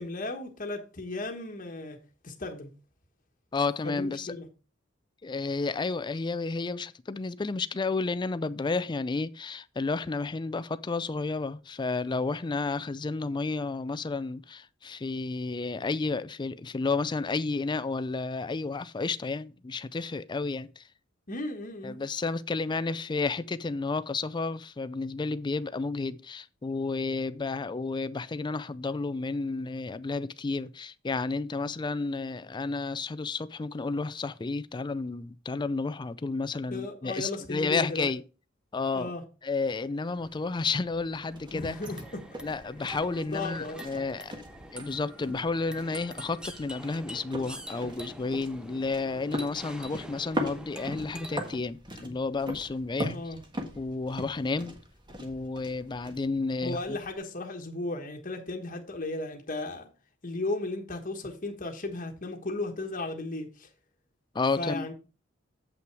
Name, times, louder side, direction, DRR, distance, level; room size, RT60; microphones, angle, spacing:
voice 1, 0.0-2.0 2.2-2.7 3.8-4.5 21.3-22.0 36.7-38.1 38.9-39.2 41.5-42.2 43.3-44.1 53.1-53.4 56.6-59.9 60.2-63.7 64.6-64.9, left 2 dB, 45° left, 1.3 m, -35 dB
voice 2, 3.5-4.3 5.2-20.8 21.8-38.2 38.7-39.1 39.4-41.8 42.4-44.3 44.7-53.1 53.8-54.8 55.2-57.0 64.3-64.9, left 3 dB, 25° left, 0.4 m, -31 dB
sound 1, 40.2-57.2, equal, 25° right, 1.5 m, -41 dB
sound 2, 41.1-51.5, equal, 5° right, 0.7 m, -46 dB
7.8 x 5.8 x 4.6 m
head